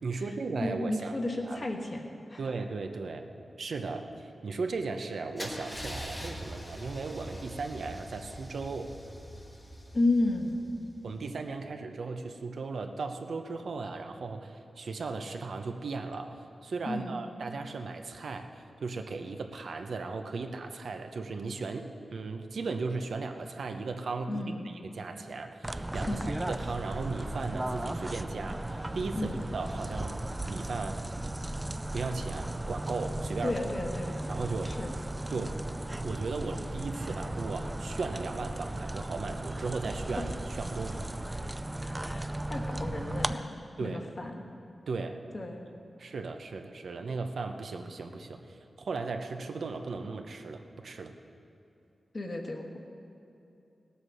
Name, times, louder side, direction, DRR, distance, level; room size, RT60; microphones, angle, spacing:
voice 1, 0.0-1.1 1.5-1.7 2.4-3.3 3.6-8.9 11.0-16.4 16.6-18.5 18.8-24.6 24.8-30.2 30.5-31.0 31.9-33.5 34.3-34.8 35.3-35.6 36.0-41.1 43.8-44.0 44.9-45.2 46.0-48.4 48.8-51.1, right 4 dB, 70° right, 5 dB, 0.8 m, -36 dB
voice 2, 0.6-2.4 9.9-10.5 16.8-17.2 24.3-24.7 26.1-26.3 29.1-29.4 33.4-34.2 34.6-34.9 41.8-44.5 45.3-45.7 52.1-52.8, left 2 dB, 35° left, 2 dB, 1.3 m, -33 dB
Car / Engine starting / Idling, 5.4-11.2, equal, 10° left, 1.2 m, -43 dB
sound 1, 25.6-43.3, right 1 dB, 15° right, 0.3 m, -36 dB
18.0 x 8.2 x 6.4 m, 2.8 s
wide cardioid pair, 155°, 0 cm